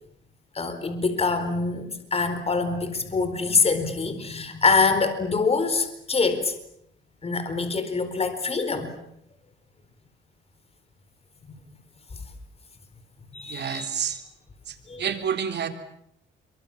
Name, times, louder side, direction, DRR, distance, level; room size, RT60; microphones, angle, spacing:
voice 1, 0.5-6.5 7.2-8.9 13.3-13.9 14.9-15.0, left 4 dB, 30° left, 10 dB, 4.3 m, -25 dB
voice 2, 13.5-14.2 14.7-15.7, right 8 dB, 60° right, 6 dB, 3.6 m, -29 dB
27.0 x 24.5 x 7.4 m, 0.76 s
cardioid pair, 90°, 20 cm